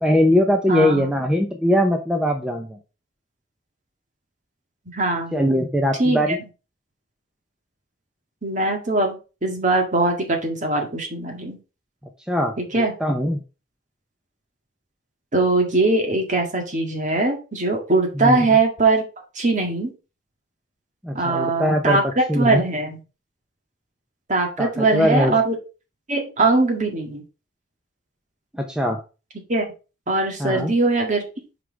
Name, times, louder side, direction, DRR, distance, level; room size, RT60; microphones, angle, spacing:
voice 1, 0.0-2.8 5.3-6.4 12.3-13.4 18.1-18.5 21.0-22.6 24.6-25.4 28.5-29.0 30.4-30.7, equal, 5° right, 3 dB, 0.7 m, -21 dB
voice 2, 0.7-1.1 4.9-5.4 6.0-6.2 8.4-11.6 12.6-12.9 15.3-19.0 19.4-19.9 21.1-23.0 24.3-25.6 26.1-27.2 29.5-29.7 30.1-31.2, right 2 dB, 40° right, 3 dB, 1.9 m, -21 dB
5.9 x 4.8 x 4.7 m, 0.32 s
head